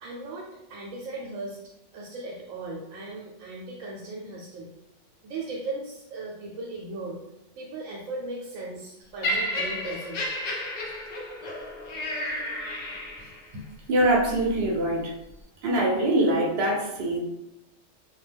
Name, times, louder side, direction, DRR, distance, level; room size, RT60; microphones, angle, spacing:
voice 1, 0.0-1.6 1.9-4.7 5.2-7.2 7.6-10.4, right 2 dB, 85° right, -3 dB, 1.0 m, -37 dB
Laughter, 9.2-13.5 14.3-14.4, left 1 dB, 55° left, 0.4 m, -32 dB
voice 2, 13.9-15.1 15.6-17.2, right 1 dB, 60° right, -1 dB, 0.8 m, -23 dB
2.3 x 2.2 x 3.3 m, 0.88 s
omnidirectional pair, 1.3 m